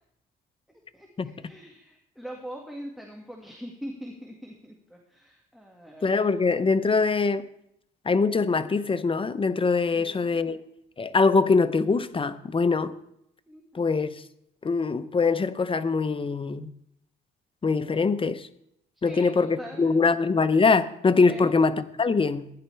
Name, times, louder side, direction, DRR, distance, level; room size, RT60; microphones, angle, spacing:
voice 1, 0.9-6.0 9.9-10.6 13.5-13.8 19.0-20.1 21.3-21.5, equal, ahead, 0 dB, 1.8 m, -42 dB
voice 2, 6.0-7.5 8.1-10.6 11.0-12.9 13.7-14.2 14.6-16.7 17.6-18.5 19.0-22.5, left 4 dB, 25° left, 13 dB, 0.7 m, -23 dB
15.0 x 10.5 x 3.4 m, 0.77 s
cardioid pair, 90°, 20 cm